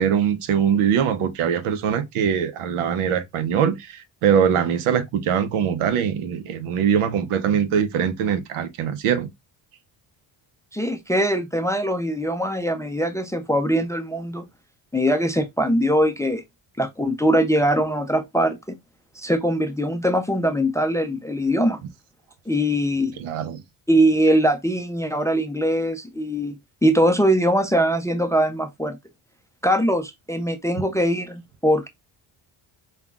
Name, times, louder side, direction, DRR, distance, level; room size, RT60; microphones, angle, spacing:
voice 1, 0.0-9.3 23.2-23.6, right 8 dB, 85° right, 0.8 m, -22 dB
voice 2, 10.7-14.5 14.9-16.4 16.8-18.6 19.2-21.8 22.5-23.2 23.9-26.6 26.8-29.0 29.6-31.9, equal, 5° left, 0.4 m, -21 dB
5.5 x 2.3 x 2.3 m
cardioid pair, 95°, 49 cm